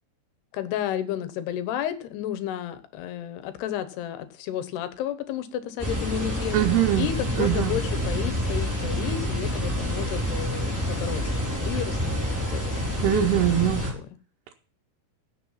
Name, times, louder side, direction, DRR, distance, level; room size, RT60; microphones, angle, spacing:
voice 1, 0.5-6.6 7.0-13.4, left 11 dB, 85° left, 12 dB, 3.2 m, -32 dB
sound 1, 5.8-13.9, equal, 5° right, 3.6 m, -28 dB
voice 2, 6.5-7.1 7.4-7.7 13.0-13.9, right 14 dB, 85° right, 1 dB, 2.9 m, -22 dB
16.0 x 6.8 x 5.6 m, 0.39 s
omnidirectional pair, 4.6 m